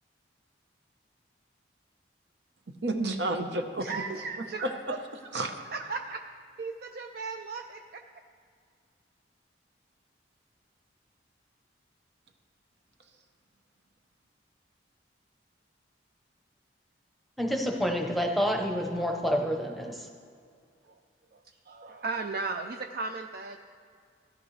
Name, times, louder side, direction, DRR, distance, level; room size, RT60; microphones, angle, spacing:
voice 1, 2.7-4.0 4.4-5.0 5.3-5.6, right 2 dB, 70° right, 5 dB, 0.9 m, -31 dB
voice 2, 3.8-4.7 5.7-6.2 6.6-8.0 21.3-21.4 21.7-23.6, right 4 dB, 55° right, 4 dB, 0.4 m, -36 dB
voice 3, 17.4-20.0, equal, ahead, 2 dB, 0.8 m, -28 dB
16.0 x 11.0 x 3.3 m, 2.2 s
head